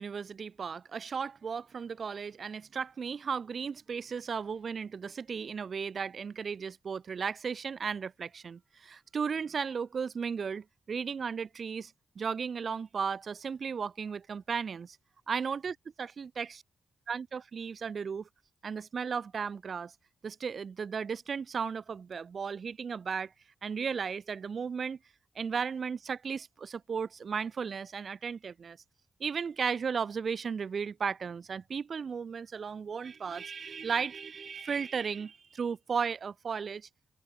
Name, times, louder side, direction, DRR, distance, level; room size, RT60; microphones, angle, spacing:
voice 1, 0.0-15.0 15.3-16.6 17.1-18.3 18.6-19.9 20.2-23.3 23.6-25.0 25.3-28.8 29.2-36.9, right 6 dB, 60° right, 1.4 m, -35 dB
cardioid pair, 65°, 0 cm